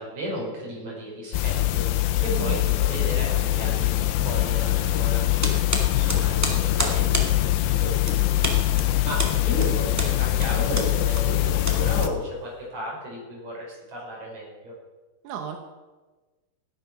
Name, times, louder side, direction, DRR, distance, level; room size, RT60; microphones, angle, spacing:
voice 1, 0.0-5.2 5.8-14.7, equal, 40° right, -3 dB, 6.9 m, -34 dB
sound 1, 1.3-12.1, left 15 dB, 90° left, 3.0 m, -23 dB
voice 2, 2.3-2.6 6.1-6.5 15.2-15.6, right 9 dB, 65° right, 4 dB, 2.0 m, -35 dB
sound 2, 5.4-12.6, right 1 dB, 15° right, 0.6 m, -31 dB
16.5 x 10.5 x 6.2 m, 1.2 s
omnidirectional pair, 4.7 m